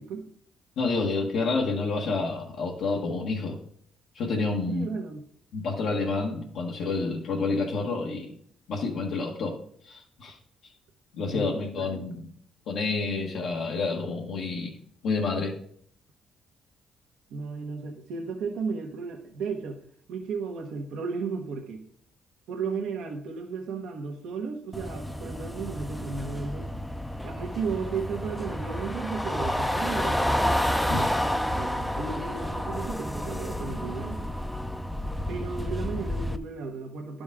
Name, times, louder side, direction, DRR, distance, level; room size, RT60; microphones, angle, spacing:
voice 1, 0.8-3.6 4.1-4.9 5.5-8.3 8.7-9.6 9.8-10.4 10.6-10.7 11.1-12.3 12.7-14.8 15.0-15.6 30.9-31.2, left 3 dB, 80° left, -3 dB, 1.4 m, -29 dB
voice 2, 4.7-5.2 11.3-12.1 17.3-19.8 20.1-21.8 22.5-26.8 27.2-30.5 30.9-34.3 35.3-37.2, right 5 dB, 85° right, 2 dB, 1.2 m, -34 dB
sound 1, 24.7-36.4, left 1 dB, 5° left, 0.5 m, -30 dB
11.5 x 5.3 x 3.6 m, 0.62 s
cardioid pair, 90°, 0 cm